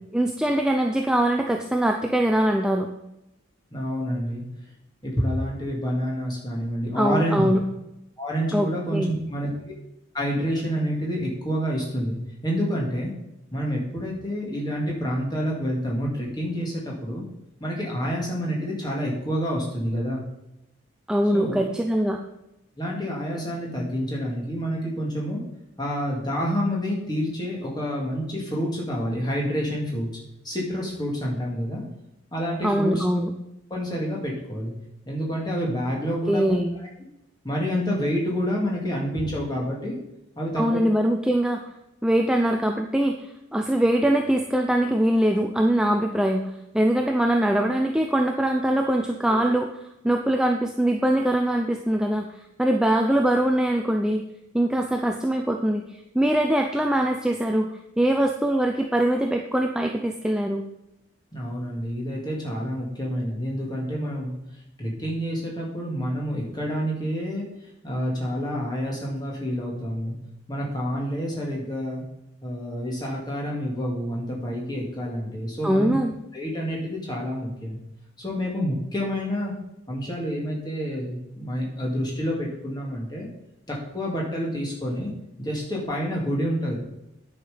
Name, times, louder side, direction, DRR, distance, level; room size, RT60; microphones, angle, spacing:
voice 1, 0.1-2.9 6.9-7.6 8.5-9.1 21.1-22.2 32.6-33.3 36.3-36.8 40.6-41.6 42.0-46.4 46.7-49.7 50.0-54.2 54.5-60.6 75.6-76.1, right 1 dB, 5° right, 2 dB, 0.4 m, -22 dB
voice 2, 3.7-4.4 5.0-7.6 8.2-9.5 10.1-12.2 12.4-13.1 13.5-17.2 17.6-20.2 21.3-21.6 22.8-25.4 25.8-30.1 30.4-31.8 32.3-33.0 33.7-34.7 35.1-36.4 37.4-40.0 40.4-40.6 49.3-49.4 61.3-64.3 64.8-67.4 67.8-70.1 70.5-72.0 72.4-76.0 76.3-77.8 78.2-79.5 79.9-83.3 83.7-85.1 85.4-86.8, equal, 20° left, -3 dB, 2.3 m, -28 dB
9.8 x 5.7 x 5.0 m, 0.88 s
head